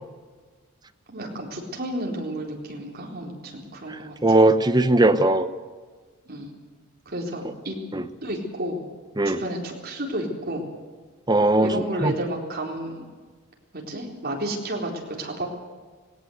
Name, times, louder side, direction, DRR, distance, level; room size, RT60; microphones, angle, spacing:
voice 1, 1.1-4.2 6.3-6.5 7.1-7.8 8.2-8.8 9.2-10.6 11.6-13.0 13.9-15.5, right 1 dB, 45° right, 0 dB, 4.0 m, -31 dB
voice 2, 4.2-5.5 7.9-8.0 9.2-9.4 11.3-11.7 12.0-12.1, right 2 dB, 20° right, 10 dB, 0.9 m, -18 dB
19.0 x 17.5 x 8.1 m, 1.4 s
head